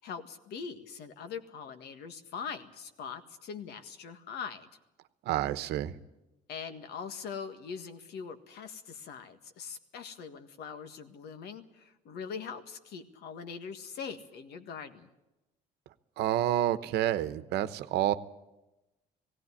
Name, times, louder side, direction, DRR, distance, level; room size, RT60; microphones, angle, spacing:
voice 1, 0.0-4.7 6.5-15.1, left 6 dB, 75° left, 8 dB, 1.8 m, -42 dB
voice 2, 5.3-5.9 16.2-18.1, right 12 dB, 80° right, 12 dB, 1.0 m, -29 dB
17.5 x 17.0 x 9.8 m, 0.98 s
cardioid pair, 110°, 17 cm